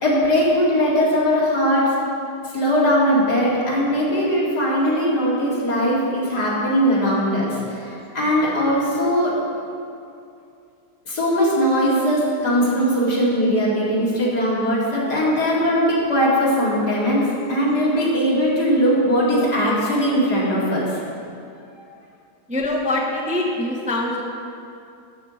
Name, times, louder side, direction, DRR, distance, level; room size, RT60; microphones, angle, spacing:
voice 1, 0.0-1.9 2.5-9.4 11.1-21.0, equal, 70° left, -6 dB, 2.8 m, -20 dB
voice 2, 22.5-24.2, left 1 dB, 5° right, -2 dB, 0.6 m, -23 dB
12.5 x 4.5 x 7.2 m, 2.5 s
omnidirectional pair, 1.8 m